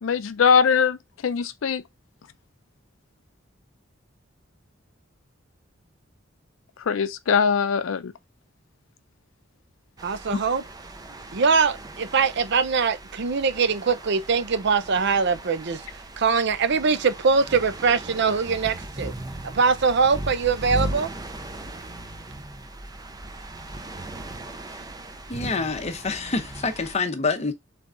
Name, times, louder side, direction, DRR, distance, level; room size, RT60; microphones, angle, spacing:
voice 1, 0.0-1.0 1.2-1.8 6.9-8.1 10.3-10.4, left 6 dB, 75° left, 0.5 m, -21 dB
sound 1, 10.0-27.0, right 1 dB, 20° right, 0.6 m, -38 dB
voice 2, 10.0-10.6 11.3-15.8 16.2-19.1 19.4-21.1, right 5 dB, 60° right, 0.6 m, -22 dB
voice 3, 25.3-27.5, left 4 dB, 35° left, 0.7 m, -27 dB
3.8 x 3.4 x 3.8 m
head